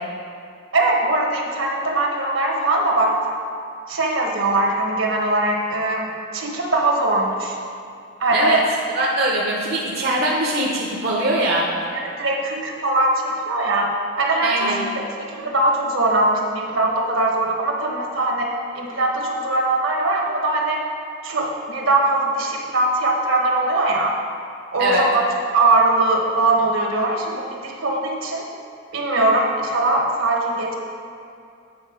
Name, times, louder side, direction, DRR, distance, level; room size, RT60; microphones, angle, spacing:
voice 1, 0.7-3.1 3.9-7.6 8.2-8.6 11.9-13.9 14.2-14.9 15.2-18.5 18.7-20.8 21.2-24.1 24.7-25.2 25.5-28.4 28.9-30.7, right 2 dB, 65° right, 0 dB, 1.2 m, -21 dB
voice 2, 8.9-11.7 14.4-14.8 24.8-25.1, right 1 dB, 50° right, -4 dB, 0.8 m, -22 dB
8.7 x 5.2 x 5.0 m, 2.4 s
head